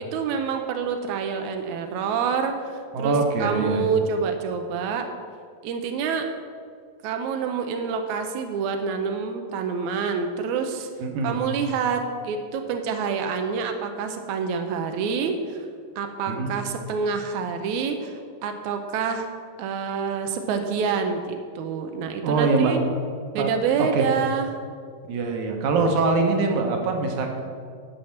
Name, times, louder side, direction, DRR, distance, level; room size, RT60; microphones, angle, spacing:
voice 1, 0.0-5.1 5.6-6.3 7.0-10.9 11.2-15.7 16.0-19.3 19.6-22.8 23.3-24.5, right 6 dB, 85° right, 5 dB, 1.7 m, -27 dB
voice 2, 2.9-3.9 11.0-11.4 16.3-16.5 22.2-22.8 23.4-23.5 23.8-24.1 25.1-27.4, right 3 dB, 65° right, 3 dB, 2.3 m, -23 dB
12.0 x 5.8 x 7.2 m, 2.1 s
omnidirectional pair, 4.3 m